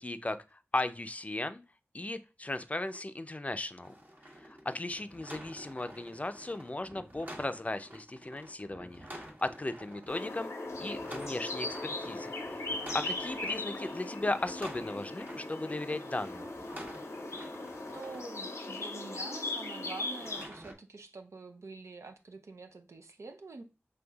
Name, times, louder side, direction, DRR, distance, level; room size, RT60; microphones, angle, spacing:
voice 1, 0.0-1.6 1.9-3.9 4.4-10.5 10.8-16.5, left 2 dB, 30° left, 0.4 m, -37 dB
sound 1, 3.8-18.2 20.2-20.7, equal, 40° right, 1.1 m, -49 dB
sound 2, 10.1-20.5, left 2 dB, 85° left, 0.7 m, -38 dB
voice 2, 17.9-23.6, right 3 dB, 85° right, 0.6 m, -46 dB
5.4 x 3.3 x 2.3 m
wide cardioid pair, 45°, 5 cm